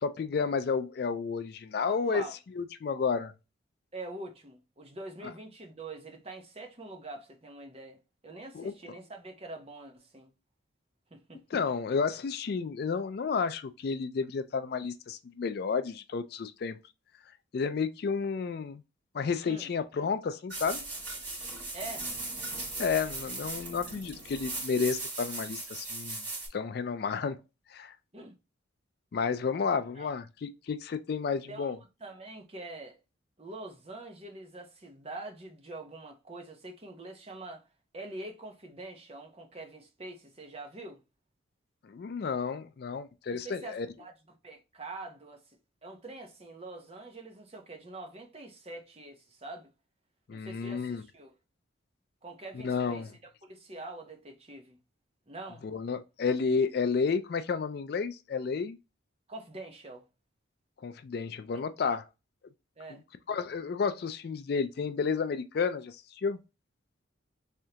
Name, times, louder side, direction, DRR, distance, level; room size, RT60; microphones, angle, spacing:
voice 1, 0.0-2.2 2.6-3.3 8.5-8.7 11.5-16.8 17.5-18.8 19.1-20.8 22.8-26.2 26.5-27.4 27.7-27.9 29.1-31.8 41.8-43.9 50.3-51.0 52.5-53.1 55.6-58.8 60.8-62.0 63.3-66.4, left 5 dB, 50° left, 0.3 m, -31 dB
voice 2, 1.8-2.3 3.9-8.0 8.2-10.3 11.1-11.6 19.4-19.7 21.7-22.1 28.1-28.3 30.0-30.1 31.5-31.7 32.0-33.0 33.4-37.6 37.9-41.0 43.3-44.1 44.4-45.6 45.8-49.7 50.3-51.3 52.2-53.1 53.4-54.8 55.3-55.6 59.3-60.1 62.8-63.0, right 2 dB, 30° right, 0.8 m, -44 dB
sound 1, 20.5-26.5, right 2 dB, 55° right, 2.4 m, -38 dB
3.6 x 3.3 x 2.8 m
head